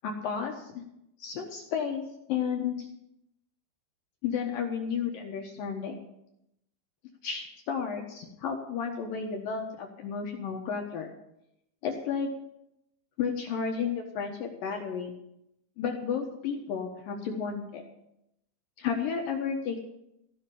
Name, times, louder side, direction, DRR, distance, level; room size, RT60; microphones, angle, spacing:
voice 1, 0.0-0.8 1.2-2.0 2.3-2.9 4.2-6.0 7.2-11.1 11.8-12.3 13.2-15.1 15.8-17.8 18.8-19.8, left 6 dB, 70° left, 2 dB, 2.3 m, -32 dB
16.0 x 5.8 x 10.0 m, 0.83 s
omnidirectional pair, 5.3 m